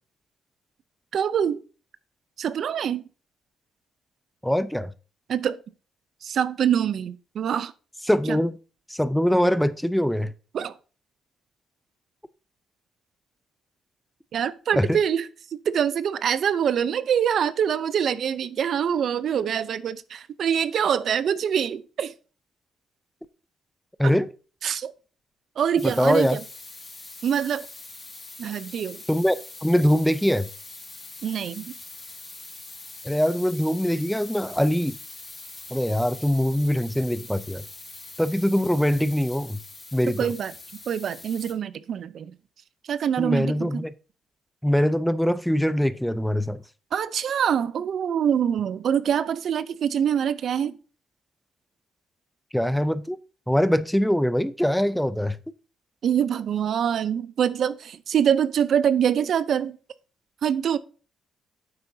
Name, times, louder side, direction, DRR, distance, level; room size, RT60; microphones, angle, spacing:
voice 1, 1.1-1.6 2.4-3.0 5.3-5.6 6.2-7.7 8.3-8.4 10.5-10.7 14.3-22.1 24.0-24.1 24.6-24.9 25.6-26.4 27.2-27.7 28.4-29.0 31.2-31.7 40.2-40.5 40.9-42.3 42.8-43.7 46.9-50.8 56.0-59.8 60.4-60.8, right 8 dB, 60° right, 0.5 m, -25 dB
voice 2, 4.4-4.9 8.1-8.6 8.9-10.3 14.7-15.0 24.0-24.3 25.8-26.4 29.1-29.4 29.6-30.5 33.0-35.0 35.7-37.7 38.2-39.6 39.9-40.3 43.2-43.9 44.6-46.6 52.5-53.2 53.5-55.4, equal, 5° left, 0.4 m, -23 dB
sound 1, 25.8-41.5, left 3 dB, 25° left, 2.0 m, -43 dB
9.5 x 8.0 x 2.7 m
cardioid pair, 90°, 0 cm